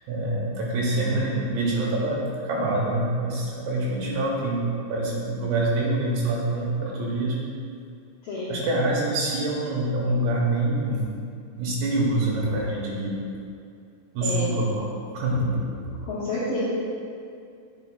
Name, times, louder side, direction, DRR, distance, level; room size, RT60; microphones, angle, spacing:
voice 1, 0.1-7.4 8.5-11.1 11.6-13.2 14.1-14.9 15.1-15.6, right 2 dB, 75° right, -4 dB, 2.6 m, -25 dB
voice 2, 8.2-8.6 14.2-14.5 16.0-16.6, left 2 dB, 75° left, -12 dB, 2.0 m, -29 dB
8.6 x 6.1 x 2.2 m, 2.4 s
omnidirectional pair, 5.7 m